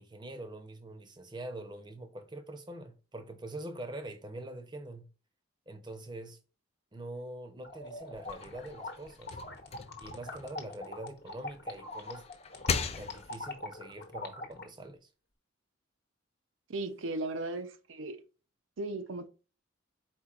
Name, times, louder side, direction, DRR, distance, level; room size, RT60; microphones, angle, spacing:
voice 1, 0.0-5.1 5.7-6.4 6.9-9.4 10.0-12.3 13.0-15.1, right 1 dB, 20° right, 0.6 m, -44 dB
sound 1, 7.6-14.7, left 2 dB, 50° left, 1.0 m, -43 dB
sound 2, 8.1-11.3 11.8-13.6, left 5 dB, 30° left, 0.3 m, -38 dB
voice 2, 16.7-18.2 18.8-19.3, right 2 dB, 75° right, 0.6 m, -36 dB
4.4 x 4.3 x 2.4 m
head